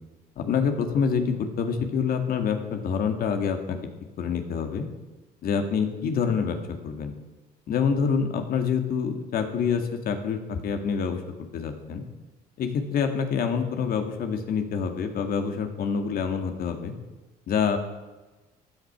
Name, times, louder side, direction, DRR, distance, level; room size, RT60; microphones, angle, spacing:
voice 1, 0.4-3.8 4.2-4.9 5.4-7.1 7.7-12.0 12.6-16.9 17.5-17.8, left 6 dB, 60° left, 6 dB, 2.1 m, -26 dB
15.5 x 10.5 x 6.0 m, 1.2 s
cardioid pair, 110°, 17 cm